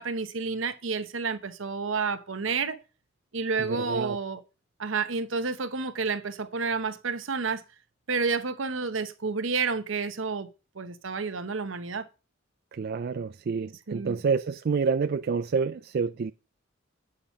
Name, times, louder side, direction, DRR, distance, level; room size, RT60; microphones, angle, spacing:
voice 1, 0.0-2.8 3.3-4.4 4.8-7.6 8.1-10.5 10.8-12.1 13.9-14.2, right 4 dB, 75° right, 0.9 m, -30 dB
voice 2, 3.6-4.2 12.7-16.3, right 5 dB, 50° right, 0.4 m, -28 dB
8.7 x 5.8 x 4.8 m
head